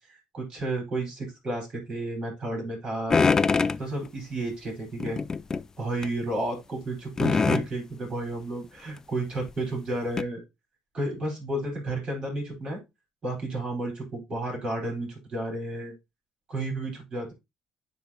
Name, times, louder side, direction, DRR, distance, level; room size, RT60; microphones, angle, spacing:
voice 1, 0.1-3.2 3.8-5.2 5.8-10.4 10.9-12.8 13.2-15.9 16.5-17.3, right 2 dB, 45° right, 1 dB, 4.7 m, -32 dB
sound 1, 3.1-3.8 5.0-5.6 6.0-6.1 7.2-7.7 9.0-9.1 9.5-9.6 10.2-10.3, left 4 dB, 30° left, 0.4 m, -23 dB
10.0 x 4.0 x 2.9 m, 0.23 s
supercardioid pair, 75°, 2 cm